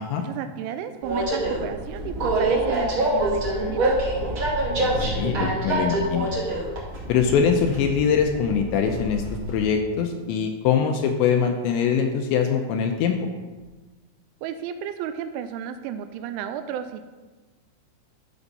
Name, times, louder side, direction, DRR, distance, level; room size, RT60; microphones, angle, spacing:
voice 1, 0.2-4.0 14.4-17.0, right 9 dB, 85° right, 9 dB, 2.8 m, -33 dB
Train, 1.0-9.6, right 1 dB, 50° right, 1.6 m, -26 dB
voice 2, 5.0-6.3 7.1-9.2 9.5-13.2, left 7 dB, 85° left, 4 dB, 2.6 m, -23 dB
12.5 x 6.1 x 4.1 m, 1.3 s
omnidirectional pair, 5.6 m